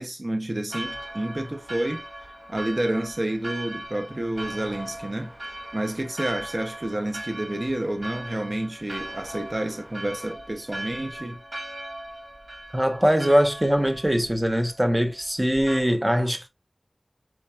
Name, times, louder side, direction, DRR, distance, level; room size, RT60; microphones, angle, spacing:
voice 1, 0.0-2.0 2.5-5.3 5.7-11.4, right 1 dB, 50° right, 0.7 m, -29 dB
Church bell, 0.7-15.8, right 1 dB, 90° right, 1.7 m, -39 dB
voice 2, 12.7-16.5, equal, 20° right, 0.8 m, -22 dB
4.6 x 4.3 x 2.2 m
wide cardioid pair, 50°, 0 cm